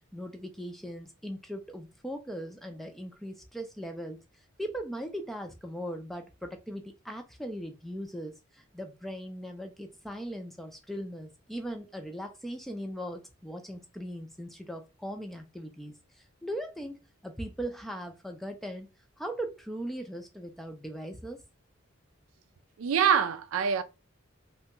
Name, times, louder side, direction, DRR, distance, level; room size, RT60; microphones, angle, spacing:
voice 1, 0.1-4.2 4.6-15.9 16.4-18.9 19.2-21.4, equal, ahead, 0.4 m, -39 dB
voice 2, 22.8-23.8, right 7 dB, 85° right, 0.4 m, -25 dB
3.3 x 2.2 x 2.9 m
head